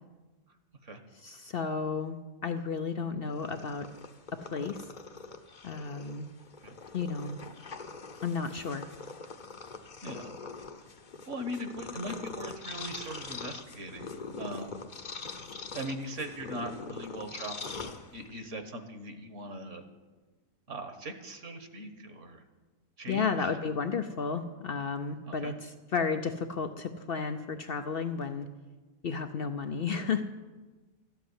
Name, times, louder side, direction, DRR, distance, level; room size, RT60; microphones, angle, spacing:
voice 1, 1.1-3.9 4.3-4.9 5.6-6.2 6.9-7.4 8.2-8.8 23.1-28.5 29.0-30.2, left 5 dB, 70° left, 8 dB, 0.5 m, -33 dB
Purr, 3.3-18.5, left 4 dB, 40° left, 0.8 m, -43 dB
voice 2, 11.3-14.1 14.4-14.8 15.7-17.7 18.1-19.8 20.7-22.4 23.0-23.5 25.3-25.5, right 1 dB, 50° right, 7 dB, 1.5 m, -40 dB
13.5 x 8.3 x 9.5 m, 1.3 s
omnidirectional pair, 1.8 m